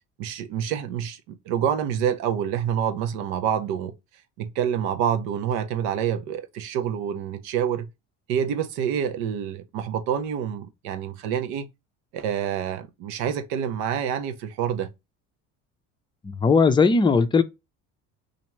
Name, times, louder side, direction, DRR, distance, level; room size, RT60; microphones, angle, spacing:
voice 1, 0.2-3.9 4.4-7.9 8.3-11.7 12.1-14.9, right 8 dB, 85° right, 0.7 m, -27 dB
voice 2, 16.2-17.4, left 4 dB, 15° left, 0.4 m, -18 dB
2.9 x 2.5 x 4.4 m
supercardioid pair, 100°, 36 cm